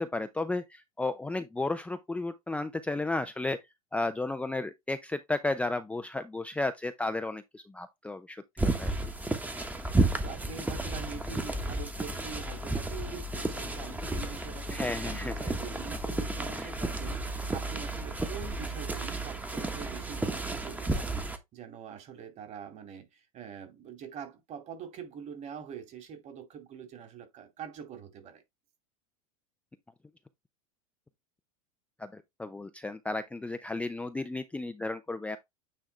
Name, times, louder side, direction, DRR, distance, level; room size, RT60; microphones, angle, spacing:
voice 1, 0.0-3.6 3.9-8.9 14.7-15.3 16.6-16.7 32.0-35.4, left 2 dB, 5° left, 0.6 m, -33 dB
sound 1, 8.6-21.4, right 2 dB, 10° right, 1.2 m, -32 dB
voice 2, 10.2-28.4, right 7 dB, 40° right, 2.5 m, -44 dB
9.0 x 3.6 x 3.3 m
hypercardioid pair, 100°, 18 cm